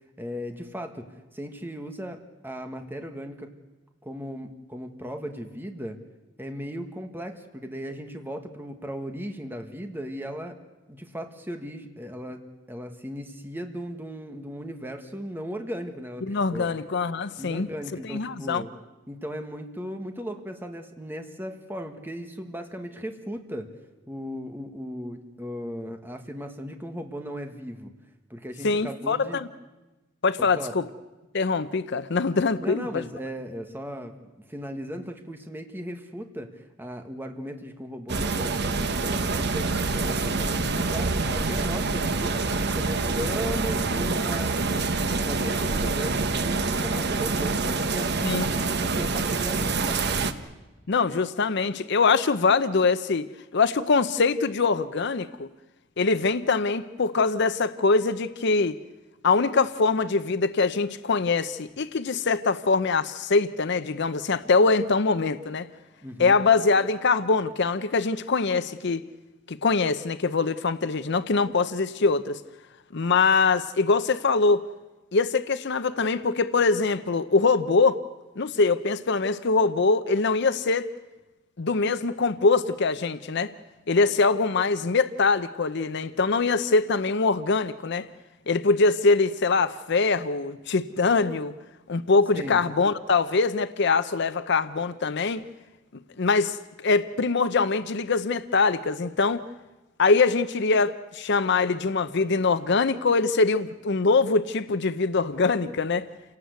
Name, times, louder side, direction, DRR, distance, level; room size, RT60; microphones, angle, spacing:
voice 1, 0.0-3.5 4.0-6.0 6.4-10.6 10.9-16.7 17.4-18.7 19.1-23.7 24.1-27.9 28.3-29.4 30.4-30.8 32.6-50.2 66.0-66.4 92.3-92.6, equal, 10° right, 5 dB, 1.6 m, -37 dB
voice 2, 16.3-17.7 18.0-18.6 28.6-29.5 30.2-30.8 31.3-33.0 48.2-48.5 50.9-53.3 53.5-55.5 56.0-58.8 59.2-65.7 66.2-69.0 69.5-72.4 72.9-74.6 75.1-78.0 78.4-80.9 81.6-83.5 83.9-88.1 88.5-91.5 91.9-95.4 96.2-96.6 96.8-99.4 100.0-106.1, left 4 dB, 60° left, 12 dB, 0.7 m, -23 dB
sound 1, 38.1-50.3, right 3 dB, 60° right, 1.2 m, -26 dB
29.0 x 18.0 x 8.1 m, 1.1 s
head